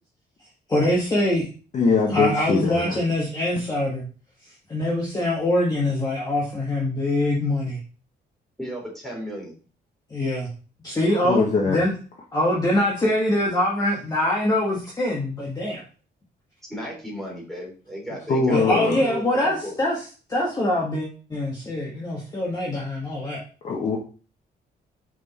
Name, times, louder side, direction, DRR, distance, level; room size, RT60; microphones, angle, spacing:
voice 1, 0.7-1.5 2.1-4.1 4.7-7.8 10.1-10.5 10.8-11.9 12.3-15.8 18.5-20.0 20.3-23.4, left 1 dB, 20° left, 1.6 m, -24 dB
voice 2, 1.7-3.0 11.1-11.8 18.3-19.1 23.6-24.0, left 4 dB, 40° left, 1.2 m, -22 dB
voice 3, 8.6-9.5 16.7-18.8 19.0-19.7, equal, ahead, 3.3 m, -34 dB
6.2 x 5.1 x 4.2 m
cardioid pair, 150°, 18 cm